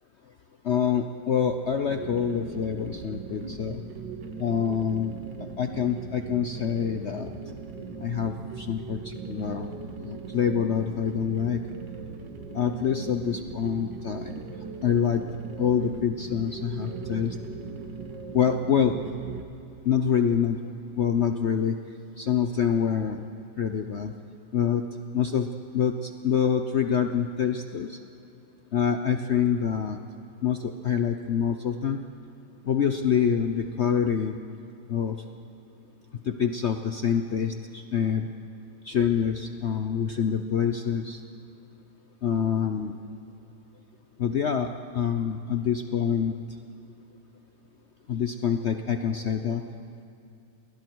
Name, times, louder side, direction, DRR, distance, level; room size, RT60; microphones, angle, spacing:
voice 1, 0.6-3.8 4.4-5.2 5.6-7.3 8.0-9.7 10.0-11.6 12.5-14.4 14.8-15.2 15.6-17.4 18.3-19.0 19.9-20.6 21.0-21.8 22.2-23.2 23.6-24.1 24.5-24.8 25.1-25.5 25.7-28.0 28.7-30.0 30.4-32.0 32.6-34.4 34.9-35.2 36.2-38.3 38.8-41.2 42.2-42.9 44.2-46.3 48.1-49.6, left 8 dB, 85° left, 6 dB, 0.6 m, -26 dB
sound 1, 1.9-19.4, right 4 dB, 60° right, 2.0 m, -39 dB
29.5 x 21.0 x 4.6 m, 2.7 s
omnidirectional pair, 2.3 m